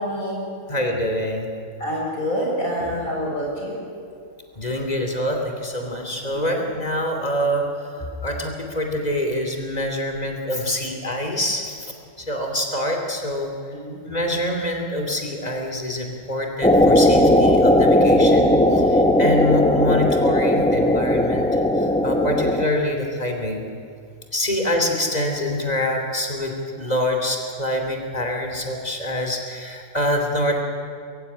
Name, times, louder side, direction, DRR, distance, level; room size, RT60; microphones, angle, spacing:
voice 1, 0.0-0.5 1.8-3.7 6.3-6.6 13.7-14.0, equal, 80° left, -4 dB, 7.3 m, -27 dB
voice 2, 0.7-1.5 4.5-13.5 14.0-21.5 21.7-23.6 24.3-30.6, left 1 dB, 30° left, 3 dB, 3.1 m, -25 dB
sound 1, 16.6-22.6, left 1 dB, 5° left, 1.0 m, -17 dB
22.5 x 15.0 x 9.8 m, 2.4 s
omnidirectional pair, 1.5 m